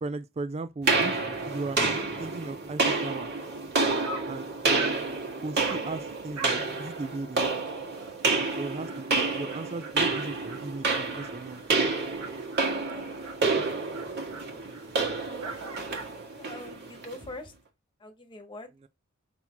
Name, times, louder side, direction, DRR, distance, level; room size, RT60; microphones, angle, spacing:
voice 1, 0.0-1.2 1.5-1.9 2.2-3.3 4.3-4.5 5.4-7.5 8.6-11.6 18.8-18.9, right 3 dB, 30° right, 0.4 m, -36 dB
sound 1, 0.9-17.2, right 3 dB, 50° right, 1.9 m, -29 dB
Dog, 4.0-4.4 4.7-5.0 5.6-5.9 6.3-6.7 7.0-7.1 7.5-7.6 8.0-8.1 8.4-16.2, right 3 dB, 90° right, 1.8 m, -44 dB
voice 2, 12.6-13.1 16.4-17.5 18.0-18.7, left 2 dB, 25° left, 1.3 m, -43 dB
5.9 x 4.0 x 4.5 m
head